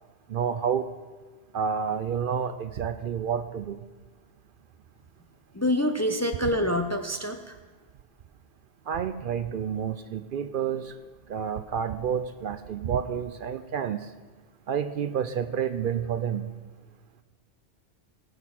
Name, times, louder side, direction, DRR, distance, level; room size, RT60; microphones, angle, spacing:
voice 1, 0.3-0.9 1.5-3.8 8.9-11.0 11.3-14.1 14.7-16.5, right 7 dB, 60° right, 11 dB, 0.7 m, -29 dB
voice 2, 5.5-7.6, left 1 dB, 20° left, 6 dB, 0.5 m, -26 dB
19.0 x 6.4 x 5.8 m, 1.4 s
omnidirectional pair, 1.1 m